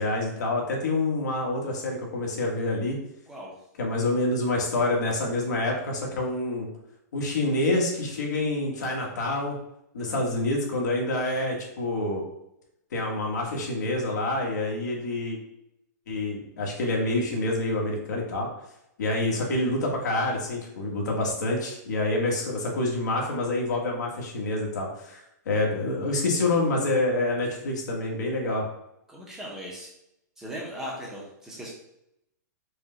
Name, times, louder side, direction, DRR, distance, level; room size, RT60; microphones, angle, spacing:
voice 1, 0.0-3.0 3.8-6.7 7.1-9.6 9.9-12.2 12.9-15.4 16.1-18.5 19.0-28.7, left 2 dB, 75° left, -1 dB, 1.4 m, -27 dB
voice 2, 29.1-29.9 30.4-31.7, equal, 5° right, -3 dB, 0.5 m, -38 dB
4.8 x 2.2 x 3.8 m, 0.81 s
hypercardioid pair, 170°, 10 cm